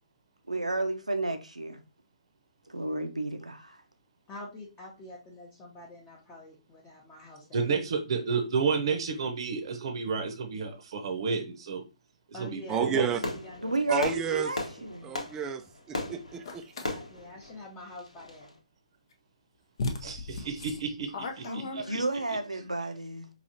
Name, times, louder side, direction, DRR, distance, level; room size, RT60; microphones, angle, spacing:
voice 1, 0.5-1.8 2.7-3.8 13.6-15.1 21.4-23.3, right 2 dB, 85° right, 0.7 m, -32 dB
voice 2, 4.3-7.8 12.3-14.1 16.8-18.5, left 1 dB, 15° left, 0.8 m, -46 dB
voice 3, 7.5-11.8 12.4-13.1 20.0-22.0, right 5 dB, 50° right, 0.8 m, -31 dB
voice 4, 12.7-13.2 13.9-14.5 15.0-15.6 15.9-16.7, right 7 dB, 15° right, 0.3 m, -30 dB
Fireworks, 12.9-18.5, left 2 dB, 80° left, 1.0 m, -38 dB
sound 1, 16.4-16.9 19.1-19.2 19.8-22.3, left 3 dB, 50° left, 0.6 m, -36 dB
4.9 x 2.7 x 2.6 m
figure-of-eight pair, 130°, 4 cm